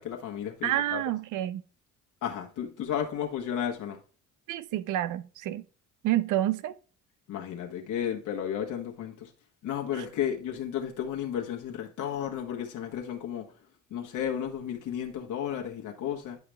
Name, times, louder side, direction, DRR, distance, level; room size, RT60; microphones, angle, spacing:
voice 1, 0.0-1.0 2.2-4.0 7.3-9.3 9.6-13.4 13.9-16.4, left 9 dB, 80° left, 1.5 m, -33 dB
voice 2, 0.6-1.6 4.5-5.6 6.0-6.7 9.9-10.1, right 13 dB, 85° right, 0.7 m, -29 dB
10.5 x 4.9 x 3.4 m
cardioid pair, 90°, 30 cm